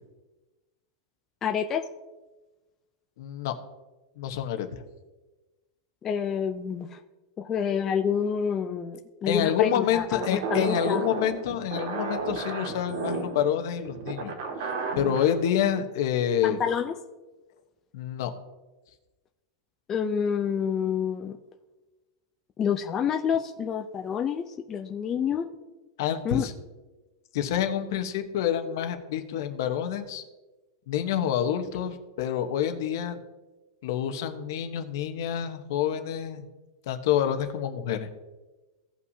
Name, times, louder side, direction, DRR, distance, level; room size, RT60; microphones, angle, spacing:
voice 1, 1.4-1.8 6.0-7.0 7.4-11.1 16.4-17.0 19.9-21.4 22.6-25.5 26.2-26.4, left 7 dB, 20° left, 4 dB, 0.4 m, -28 dB
voice 2, 3.2-3.5 4.2-4.7 9.3-16.6 17.9-18.3 26.0-26.5 27.3-30.2 30.9-33.2 33.8-36.4 36.9-38.1, left 9 dB, 60° left, 7 dB, 1.0 m, -28 dB
sound 1, 10.2-15.3, right 4 dB, 70° right, 1.9 m, -32 dB
17.0 x 5.7 x 2.7 m, 1.2 s
supercardioid pair, 165°, 2 cm